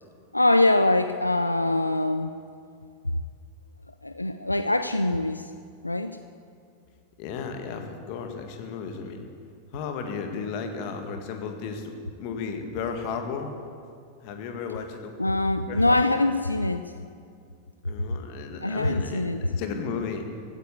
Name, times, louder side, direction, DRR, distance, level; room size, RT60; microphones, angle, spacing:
voice 1, 0.3-2.3 4.0-5.5 5.8-6.2 15.2-16.8 18.6-19.5, left 2 dB, 85° left, 10 dB, 0.4 m, -23 dB
voice 2, 7.2-9.3 9.7-13.5 14.2-15.1 15.7-16.2 17.8-20.3, left 5 dB, 45° left, 5 dB, 1.9 m, -34 dB
16.0 x 9.6 x 8.4 m, 2.3 s
figure-of-eight pair, 90°, 0 cm